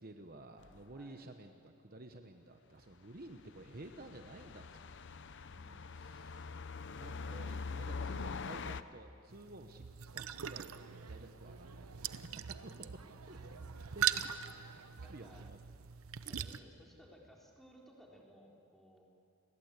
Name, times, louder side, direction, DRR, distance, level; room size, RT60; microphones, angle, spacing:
voice 1, 0.0-4.8 5.9-6.5 6.9-13.4 13.9-14.8 15.1-15.6 16.2-16.3, right 2 dB, 40° right, 6 dB, 1.0 m, -53 dB
sound 1, 0.6-0.8 3.4-8.8, left 4 dB, 55° left, 0.7 m, -43 dB
voice 2, 5.4-6.2 13.3-13.6 13.9-14.1 15.0-15.5 16.3-19.0, equal, ahead, -2 dB, 3.6 m, -60 dB
sound 2, 9.3-16.6, right 9 dB, 70° right, 0.7 m, -41 dB
sound 3, 10.1-15.5, right 4 dB, 85° right, 1.1 m, -57 dB
29.5 x 21.0 x 8.2 m, 2.6 s
head